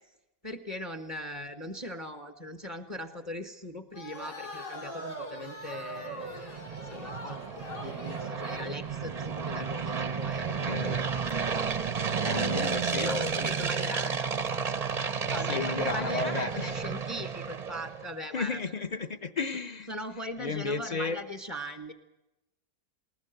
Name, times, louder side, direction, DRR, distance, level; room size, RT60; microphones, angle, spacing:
voice 1, 0.4-10.8 11.9-12.7 13.0-14.3 15.3-18.6 19.9-21.9, left 1 dB, 20° left, 8 dB, 1.2 m, -40 dB
sound 1, 3.9-8.8, equal, 90° left, 6.3 m, -42 dB
sound 2, 5.8-18.1, right 6 dB, 35° right, 0.6 m, -32 dB
voice 2, 10.4-11.0 12.0-13.3 15.5-16.8 18.3-19.9 20.4-21.2, left 4 dB, 35° left, 12 dB, 0.7 m, -33 dB
20.0 x 19.5 x 7.9 m, 0.95 s
omnidirectional pair, 1.8 m